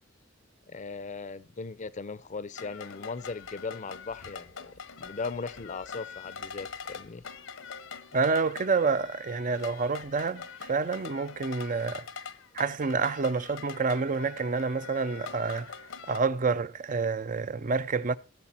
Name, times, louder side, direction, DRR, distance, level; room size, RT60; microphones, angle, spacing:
voice 1, 0.7-4.7 5.0-7.2, left 4 dB, 40° left, 0.6 m, -38 dB
sound 1, 2.5-16.2, left 6 dB, 75° left, 1.0 m, -44 dB
voice 2, 8.1-12.1 12.5-15.7 16.1-18.2, right 4 dB, 40° right, 0.6 m, -28 dB
16.0 x 7.4 x 4.3 m
head